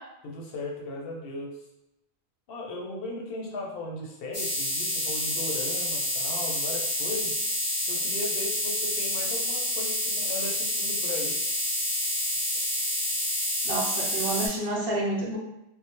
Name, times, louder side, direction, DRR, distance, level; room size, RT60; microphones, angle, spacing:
voice 1, 0.2-1.6 2.5-7.4 7.9-11.4, left 2 dB, 65° left, -1 dB, 0.7 m, -37 dB
sound 1, 4.3-14.5, left 1 dB, 15° left, 0.7 m, -28 dB
voice 2, 13.6-15.4, right 2 dB, 65° right, -4 dB, 0.8 m, -29 dB
2.1 x 2.0 x 2.8 m, 0.88 s
omnidirectional pair, 1.2 m